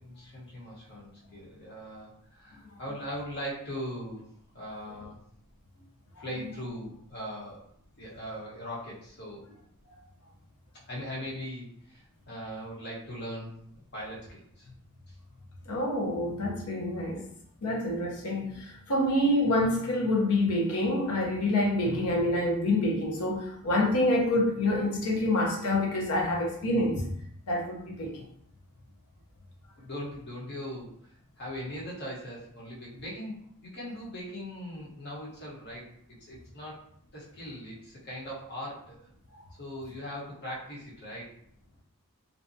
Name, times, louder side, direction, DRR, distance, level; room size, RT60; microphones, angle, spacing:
voice 1, 0.0-4.3 4.5-5.2 6.2-7.6 8.0-9.4 10.9-13.6 13.9-14.7 29.8-30.9 31.4-35.9 36.3-36.8 37.1-39.0 39.6-41.3, equal, 50° left, -5 dB, 1.0 m, -40 dB
voice 2, 15.7-17.3 17.6-27.1 27.5-28.2, left 1 dB, 85° left, -1 dB, 0.6 m, -27 dB
2.6 x 2.2 x 2.5 m, 0.66 s
head